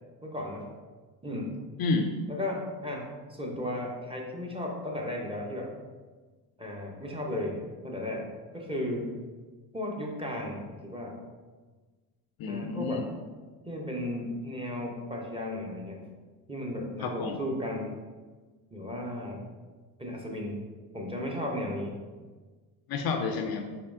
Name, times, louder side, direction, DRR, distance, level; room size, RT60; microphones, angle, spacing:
voice 1, 0.2-0.7 1.2-1.6 2.3-5.7 6.6-7.6 7.8-9.2 9.7-11.2 12.5-13.1 13.7-16.0 16.5-18.0 18.7-19.4 20.0-20.6 20.9-22.0, left 1 dB, 10° right, -1 dB, 0.7 m, -35 dB
voice 2, 1.8-2.1 12.4-13.1 17.0-17.4 22.9-23.7, left 4 dB, 50° left, 5 dB, 0.4 m, -30 dB
4.3 x 2.7 x 2.6 m, 1.4 s
supercardioid pair, 75°, 47 cm